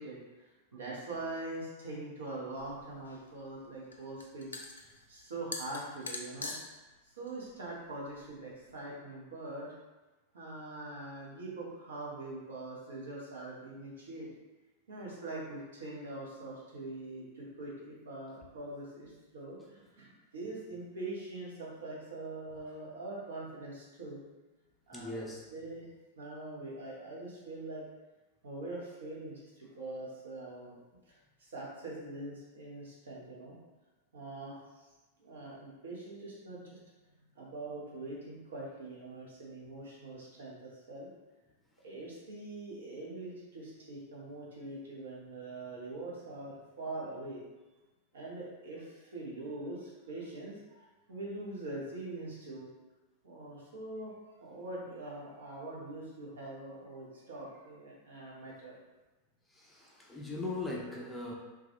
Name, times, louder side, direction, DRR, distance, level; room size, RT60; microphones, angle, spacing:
voice 1, 0.0-4.7 5.1-6.5 7.0-9.7 10.3-14.3 14.9-24.2 24.9-25.8 26.2-27.8 28.4-30.8 31.1-33.6 34.1-34.9 35.2-36.8 37.3-41.1 41.8-47.4 48.1-52.7 53.2-58.8, right 2 dB, 65° right, -5 dB, 0.7 m, -43 dB
sound 1, 2.6-8.7, left 3 dB, 75° left, 0.3 m, -45 dB
voice 2, 24.9-25.4 59.5-61.3, left 2 dB, 10° left, -3 dB, 0.5 m, -39 dB
2.3 x 2.2 x 2.8 m, 1.1 s
figure-of-eight pair, 90°, 0 cm